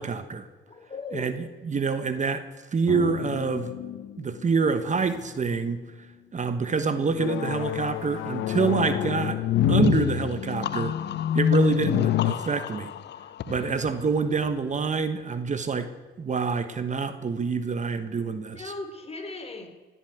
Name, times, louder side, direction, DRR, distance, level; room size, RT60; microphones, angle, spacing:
voice 1, 0.0-0.5 1.1-1.4 1.6-2.4 2.7-3.7 4.2-5.8 6.3-9.4 9.7-11.0 11.3-12.9 13.5-15.9 16.2-18.7, right 5 dB, 40° right, 10 dB, 1.2 m, -26 dB
voice 2, 0.7-1.4 18.5-19.7, left 3 dB, 30° left, 4 dB, 3.5 m, -37 dB
sound 1, 2.9-4.6 5.2-5.7 6.4-12.3, left 9 dB, 85° left, 0.9 m, -27 dB
sound 2, 9.8-15.4, left 11 dB, 60° left, 0.7 m, -38 dB
17.0 x 8.4 x 9.4 m, 1.4 s
cardioid pair, 90°, 20 cm